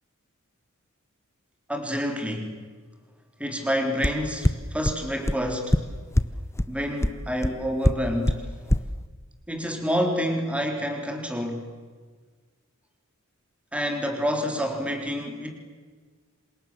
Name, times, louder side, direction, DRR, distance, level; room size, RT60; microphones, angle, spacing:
voice 1, 1.7-2.7 3.4-5.8 6.7-8.5 9.5-11.7 13.7-15.5, equal, 5° right, 3 dB, 3.8 m, -28 dB
sound 1, 4.0-4.1 4.4-4.5 4.8-4.9 5.3-5.4 5.7-5.8 6.2-6.3 6.6-6.7 7.0-7.1 7.4-7.5 7.8-7.9 8.3-8.4 8.7-8.8, left 1 dB, 15° left, 0.8 m, -19 dB
28.5 x 27.5 x 7.6 m, 1.5 s
head